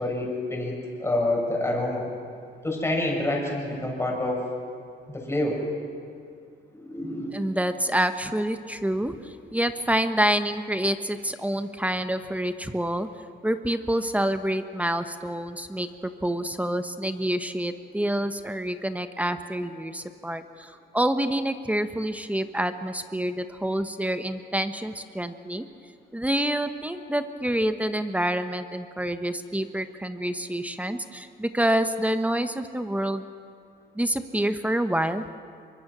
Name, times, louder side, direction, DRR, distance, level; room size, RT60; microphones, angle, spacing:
voice 1, 0.0-2.1 2.6-4.5 5.1-5.6 6.7-7.5, left 1 dB, 15° left, -1 dB, 6.7 m, -27 dB
voice 2, 7.3-13.1 13.4-15.9 16.2-25.6 26.1-33.2 33.9-35.2, right 1 dB, 5° right, 9 dB, 1.2 m, -27 dB
24.5 x 23.0 x 6.3 m, 2.2 s
cardioid pair, 90°, 20 cm